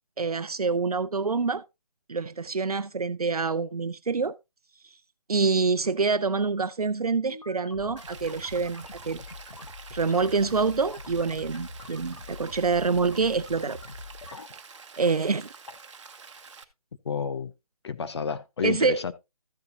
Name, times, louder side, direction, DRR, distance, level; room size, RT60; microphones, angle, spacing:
voice 1, 0.2-1.6 2.1-4.4 5.3-9.2 9.9-13.8 15.0-15.5 18.6-19.0, right 4 dB, 75° right, 0.6 m, -26 dB
sound 1, 7.2-14.4, left 3 dB, 80° left, 1.5 m, -44 dB
Rain, 8.0-16.6, right 5 dB, 50° right, 1.2 m, -48 dB
voice 2, 17.0-17.5 17.8-19.1, left 6 dB, 45° left, 0.8 m, -30 dB
14.0 x 6.9 x 2.7 m
figure-of-eight pair, 145°, 19 cm